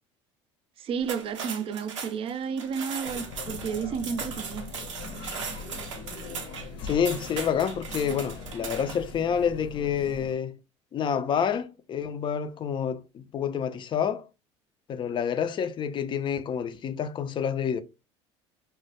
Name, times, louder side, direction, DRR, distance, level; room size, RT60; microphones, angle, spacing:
voice 1, 0.8-4.7 8.1-8.2, right 6 dB, 35° right, 0.3 m, -32 dB
sound 1, 1.0-9.1, right 6 dB, 90° right, 0.5 m, -38 dB
sound 2, 3.0-10.3, left 4 dB, 70° left, 0.7 m, -41 dB
voice 2, 6.8-10.6 10.9-14.3 14.9-17.8, left 8 dB, 30° left, 0.4 m, -28 dB
2.2 x 2.1 x 2.7 m
hypercardioid pair, 75°, 15 cm